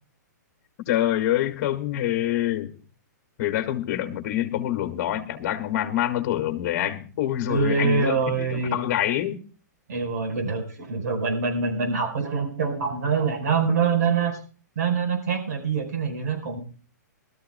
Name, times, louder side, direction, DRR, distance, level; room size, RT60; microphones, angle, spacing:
voice 1, 0.9-2.7 3.4-9.4, left 12 dB, 45° left, 6 dB, 1.9 m, -26 dB
voice 2, 7.5-8.8 9.9-14.4 14.8-16.6, right 5 dB, 65° right, 4 dB, 4.8 m, -25 dB
23.0 x 13.0 x 2.2 m, 0.39 s
hypercardioid pair, 140°, 10 cm